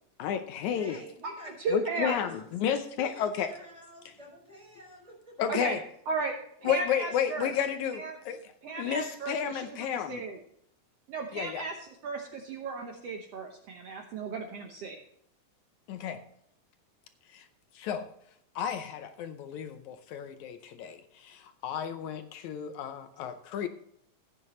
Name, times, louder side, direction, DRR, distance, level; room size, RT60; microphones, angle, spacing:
voice 1, 0.2-1.0 1.7-3.5 5.4-5.8 6.6-8.5 8.8-10.2 11.3-11.7 15.9-16.2 17.3-17.5 17.7-18.1 18.6-23.7, left 8 dB, 75° left, 8 dB, 2.0 m, -32 dB
voice 2, 0.7-2.5 3.0-5.5, equal, 10° right, -3 dB, 5.3 m, -48 dB
voice 3, 1.6-2.2 5.5-5.8 6.1-6.4 6.6-7.5 7.9-8.2 8.6-10.4 11.1-15.0, right 4 dB, 65° right, 2 dB, 1.8 m, -35 dB
15.5 x 9.2 x 3.1 m, 0.71 s
omnidirectional pair, 3.5 m